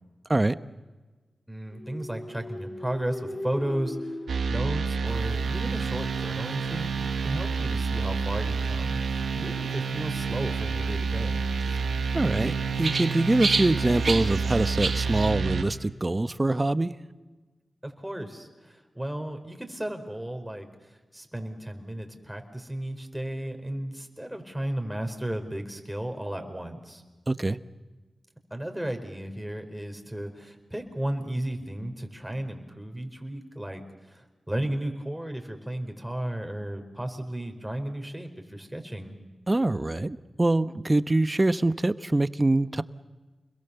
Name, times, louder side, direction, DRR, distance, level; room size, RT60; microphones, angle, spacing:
voice 1, 1.5-4.2 4.5-11.4 17.8-27.0 28.5-39.2, right 1 dB, 5° right, 5 dB, 4.7 m, -34 dB
sound 1, 1.7-5.5, left 1 dB, 50° left, 4.7 m, -38 dB
sound 2, 4.3-15.6, right 5 dB, 85° right, 1.7 m, -29 dB
sound 3, 5.1-15.3, right 3 dB, 55° right, 2.3 m, -36 dB
voice 2, 12.1-16.9 27.3-27.6 39.5-42.8, right 2 dB, 30° right, 12 dB, 1.0 m, -24 dB
30.0 x 22.0 x 7.0 m, 1.2 s
cardioid pair, 40°, 0 cm